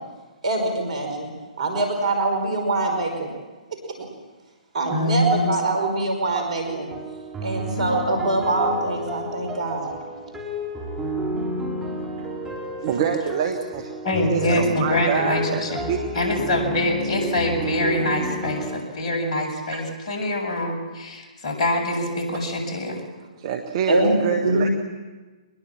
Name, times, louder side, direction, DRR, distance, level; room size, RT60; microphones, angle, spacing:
voice 1, 0.4-3.3 4.7-6.9 7.4-10.2 23.9-24.1 24.4-24.7, right 2 dB, 60° right, 4 dB, 5.3 m, -24 dB
voice 2, 4.9-5.5 14.0-15.8 16.1-23.0, left 1 dB, 40° left, 2 dB, 7.6 m, -24 dB
sound 1, 6.6-18.8, right 1 dB, 5° right, 4.8 m, -31 dB
voice 3, 12.8-13.9 14.3-16.3 19.7-19.8 23.4-24.7, right 7 dB, 45° right, 5 dB, 1.7 m, -26 dB
24.0 x 21.5 x 7.5 m, 1.3 s
figure-of-eight pair, 125°, 4 cm